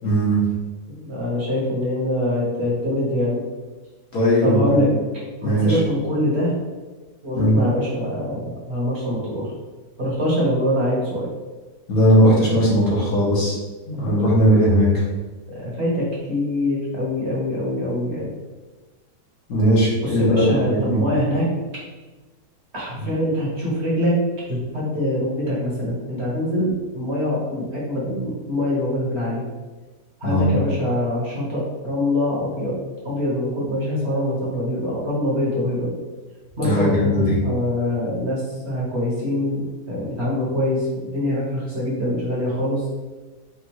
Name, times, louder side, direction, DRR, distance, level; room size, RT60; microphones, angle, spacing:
voice 1, 0.0-0.4 4.1-4.9 5.4-5.8 7.3-7.6 11.9-13.6 13.9-14.9 19.5-21.0 30.2-30.6 36.6-37.4, equal, 65° left, -6 dB, 1.7 m, -18 dB
voice 2, 0.9-3.4 4.4-4.9 5.4-6.5 7.2-9.5 10.0-11.3 15.5-18.3 20.0-21.4 22.7-24.1 24.5-29.4 30.2-32.7 33.0-35.9 36.6-42.8, left 1 dB, 45° right, -6 dB, 1.4 m, -24 dB
5.1 x 2.6 x 3.0 m, 1.2 s
omnidirectional pair, 1.7 m